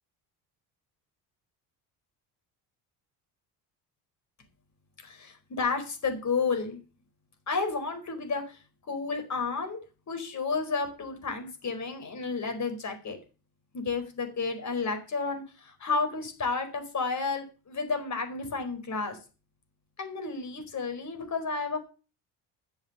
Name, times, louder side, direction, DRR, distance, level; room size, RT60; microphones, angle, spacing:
voice 1, 5.0-6.8 7.5-9.8 10.1-13.2 13.7-19.2 20.0-21.8, left 4 dB, 40° left, 6 dB, 4.7 m, -31 dB
11.0 x 7.4 x 7.9 m, 0.34 s
supercardioid pair, 90°, 43 cm